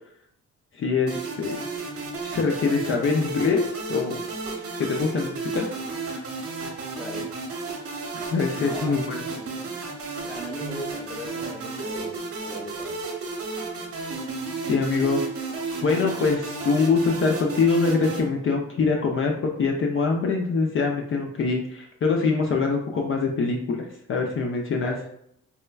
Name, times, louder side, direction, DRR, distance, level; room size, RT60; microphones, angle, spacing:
voice 1, 0.8-1.6 2.2-4.2 4.8-5.7 6.1-6.2 8.3-9.2 14.7-15.2 15.8-24.9, left 4 dB, 45° left, 1 dB, 0.5 m, -24 dB
sound 1, 1.1-18.2, right 3 dB, 50° right, 0.9 m, -33 dB
voice 2, 7.0-7.3 8.6-13.0 24.8-25.1, right 1 dB, ahead, -2 dB, 0.8 m, -39 dB
4.3 x 2.1 x 2.3 m, 0.72 s
cardioid pair, 90°, 30 cm